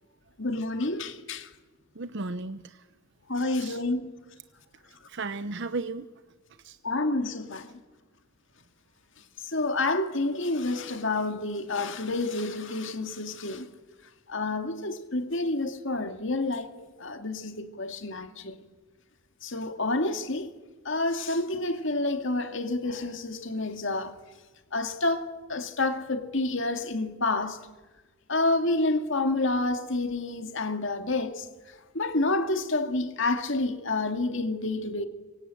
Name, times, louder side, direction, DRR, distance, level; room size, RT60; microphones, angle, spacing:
voice 1, 0.4-1.5 3.3-4.1 6.8-7.7 9.4-13.7 14.3-16.7 17.0-18.6 19.4-20.5 20.8-24.1 24.7-27.6 28.3-31.5 31.9-35.1, left 2 dB, 60° left, 2.3 m, -29 dB
voice 2, 2.0-2.8 3.6-3.8 5.1-6.1 6.6-6.8, right 3 dB, 55° right, 0.8 m, -34 dB
25.5 x 24.0 x 9.1 m
head